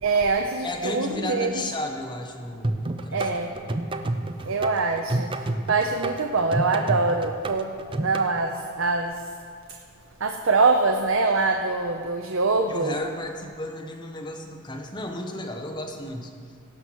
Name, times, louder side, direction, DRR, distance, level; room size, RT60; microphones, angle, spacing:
voice 1, 0.0-1.5 3.1-3.5 4.5-7.7 8.0-9.3 10.2-13.0, right 3 dB, 70° right, 4 dB, 0.7 m, -24 dB
voice 2, 0.6-3.3 3.5-3.8 12.7-16.3, left 1 dB, 20° left, 2 dB, 1.1 m, -33 dB
sound 1, 2.6-8.3, right 2 dB, 25° right, 0.5 m, -29 dB
17.0 x 5.8 x 6.3 m, 2.3 s
head